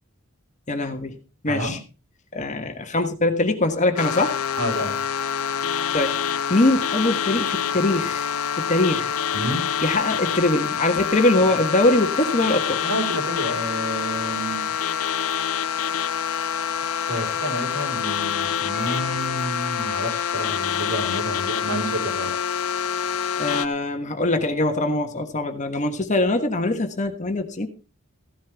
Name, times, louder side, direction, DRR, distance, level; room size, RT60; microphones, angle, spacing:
voice 1, 0.7-1.2 1.4-1.8 2.3-4.4 5.9-6.2 6.5-8.3 8.6-9.1 9.8-12.8 23.4-27.7, left 2 dB, 35° left, 6 dB, 1.4 m, -22 dB
sound 1, 4.0-23.7, left 8 dB, 75° left, 0.6 m, -26 dB
voice 2, 4.6-5.0 9.3-9.6 12.8-14.8 17.1-22.3, right 1 dB, 65° right, 2 dB, 4.8 m, -29 dB
15.0 x 11.5 x 3.5 m, 0.33 s
head